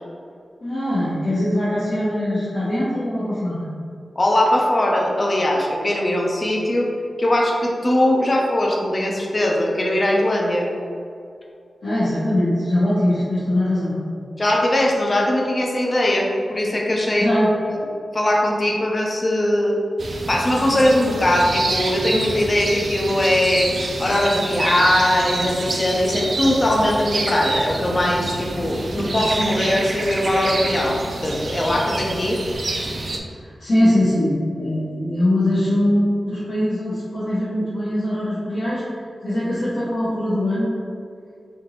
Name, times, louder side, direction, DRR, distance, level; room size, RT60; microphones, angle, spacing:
voice 1, 0.6-3.6 11.8-14.0 17.1-17.5 33.4-40.7, left 1 dB, 70° left, -12 dB, 1.1 m, -22 dB
voice 2, 4.2-6.9 7.2-10.7 14.4-17.4 17.7-17.8 18.1-19.8 20.3-23.7 24.0-32.4, left 1 dB, 35° left, -1 dB, 0.6 m, -20 dB
sound 1, 20.0-33.2, right 2 dB, 55° right, 0.4 m, -27 dB
3.7 x 3.5 x 3.0 m, 2.4 s
wide cardioid pair, 125°, 0 cm